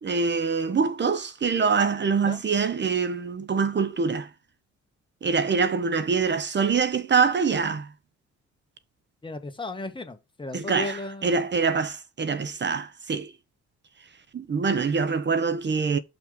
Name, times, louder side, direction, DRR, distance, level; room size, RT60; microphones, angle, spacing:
voice 1, 0.0-4.3 5.2-7.9 10.5-13.3 14.3-16.0, right 5 dB, 35° right, 1.0 m, -24 dB
voice 2, 9.2-11.5, left 2 dB, 15° left, 1.7 m, -35 dB
5.9 x 5.5 x 5.3 m
cardioid pair, 90°, 30 cm